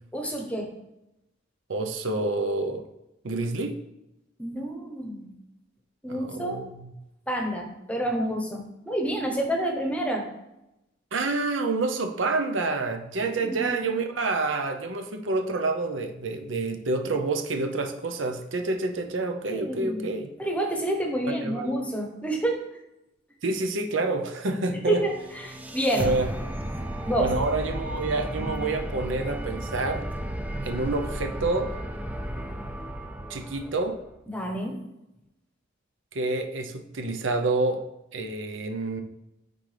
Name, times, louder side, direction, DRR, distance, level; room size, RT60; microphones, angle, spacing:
voice 1, 0.1-0.7 4.4-5.3 6.0-6.6 7.3-10.3 13.2-13.7 19.5-20.1 20.4-22.6 24.9-26.1 27.1-27.3 34.3-34.8, right 1 dB, 5° left, 1 dB, 1.0 m, -28 dB
voice 2, 1.7-2.8 3.2-3.8 6.1-6.9 11.1-20.3 21.2-21.8 23.4-25.0 25.9-26.3 27.1-30.1 30.6-31.7 33.3-34.0 36.1-37.9 38.1-39.0, right 3 dB, 80° right, 6 dB, 0.7 m, -28 dB
sound 1, 25.0-34.1, right 1 dB, 10° right, 0.3 m, -34 dB
9.3 x 3.8 x 3.3 m, 0.90 s
head